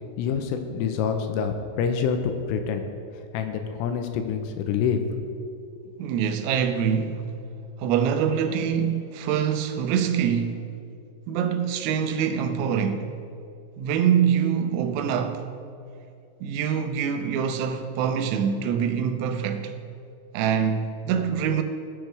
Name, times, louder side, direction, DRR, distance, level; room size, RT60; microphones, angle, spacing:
voice 1, 0.2-2.8 3.3-5.0, left 7 dB, 90° left, 3.3 m, -26 dB
voice 2, 6.0-7.3 7.8-10.7 11.3-13.1 13.8-15.5 16.4-19.8 20.3-21.6, right 8 dB, 90° right, 3.5 m, -25 dB
19.5 x 7.6 x 3.4 m
omnidirectional pair, 5.9 m